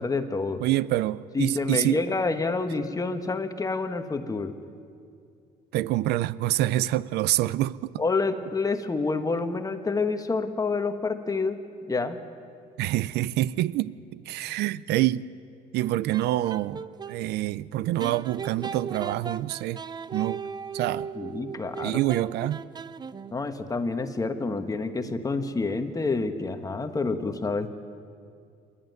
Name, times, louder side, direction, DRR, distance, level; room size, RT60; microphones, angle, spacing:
voice 1, 0.0-0.6 1.3-4.5 8.0-12.2 21.1-22.0 23.3-27.7, left 3 dB, 20° left, 1.3 m, -28 dB
voice 2, 0.6-2.0 5.7-8.0 12.8-15.2 15.7-19.8 20.1-20.4 20.7-21.1 21.8-22.6, right 15 dB, 80° right, 0.5 m, -26 dB
sound 1, 15.8-17.2 18.0-23.5, right 6 dB, 25° right, 0.6 m, -37 dB
26.5 x 11.5 x 9.3 m
cardioid pair, 110°, 17 cm